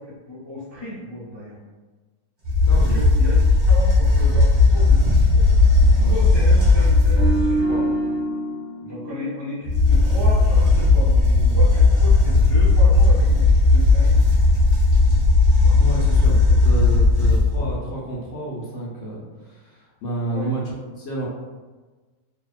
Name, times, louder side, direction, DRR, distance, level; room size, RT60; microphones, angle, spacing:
voice 1, 0.0-1.6 2.9-3.4 3.7-5.5 5.8-8.0 8.8-14.1 15.6-15.8 20.3-20.6, left 1 dB, 30° left, -11 dB, 0.4 m, -34 dB
sound 1, 2.4-7.6 9.6-17.7, left 3 dB, 35° right, 1.1 m, -16 dB
voice 2, 2.6-3.0 6.0-6.1 15.8-21.3, right 2 dB, 65° left, -5 dB, 0.8 m, -30 dB
sound 2, 7.1-10.4 10.7-10.9, right 1 dB, 70° right, 0.8 m, -27 dB
2.6 x 2.1 x 2.3 m, 1.3 s
omnidirectional pair, 1.7 m